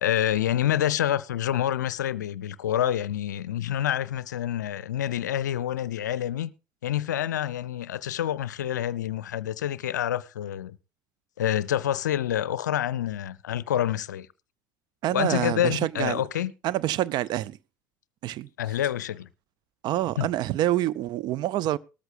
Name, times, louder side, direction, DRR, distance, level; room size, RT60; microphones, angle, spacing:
voice 1, 0.0-6.5 6.8-10.8 11.4-14.3 15.1-16.5 18.6-19.3 20.2-20.3, left 11 dB, 75° left, 0.5 m, -27 dB
voice 2, 15.0-16.2 16.6-17.6 18.2-18.5 19.8-21.8, right 14 dB, 50° right, 0.6 m, -27 dB
19.0 x 13.5 x 2.5 m
figure-of-eight pair, 65°, 10 cm